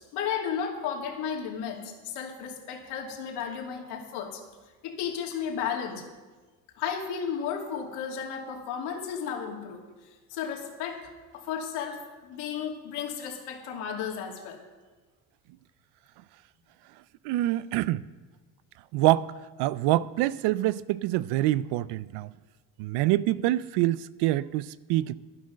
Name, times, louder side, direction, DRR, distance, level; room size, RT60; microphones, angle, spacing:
voice 1, 0.1-4.4 4.8-6.0 6.8-14.6, left 7 dB, 80° left, 2.7 m, -34 dB
voice 2, 17.2-18.1 18.9-19.3 19.6-22.3 22.8-25.2, right 15 dB, 85° right, 0.6 m, -26 dB
12.0 x 9.9 x 6.3 m
cardioid pair, 155°, 40 cm